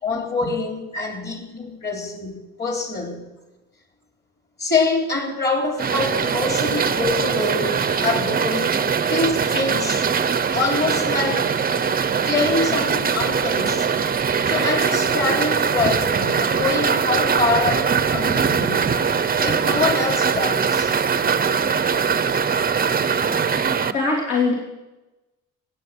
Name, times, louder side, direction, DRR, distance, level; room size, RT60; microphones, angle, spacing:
voice 1, 0.0-3.3 4.6-8.8 9.1-10.1 10.5-11.5 12.2-13.9 14.4-21.0, left 3 dB, 35° left, 3 dB, 3.5 m, -25 dB
sound 1, 5.8-23.9, right 6 dB, 30° right, 0.7 m, -21 dB
voice 2, 23.9-24.6, left 4 dB, 65° left, -3 dB, 3.4 m, -21 dB
16.5 x 8.6 x 7.7 m, 1.1 s
cardioid pair, 90°, 30 cm